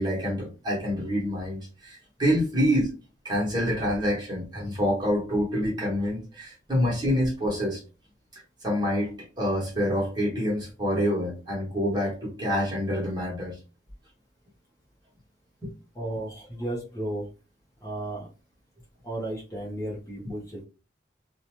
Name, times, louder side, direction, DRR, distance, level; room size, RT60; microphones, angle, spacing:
voice 1, 0.0-2.9 3.2-7.8 8.3-13.6 15.6-15.7, equal, 25° right, -4 dB, 1.2 m, -27 dB
voice 2, 15.9-17.3 17.8-18.3 19.0-20.6, right 1 dB, 15° left, -5 dB, 0.8 m, -34 dB
2.7 x 2.2 x 3.0 m, 0.33 s
head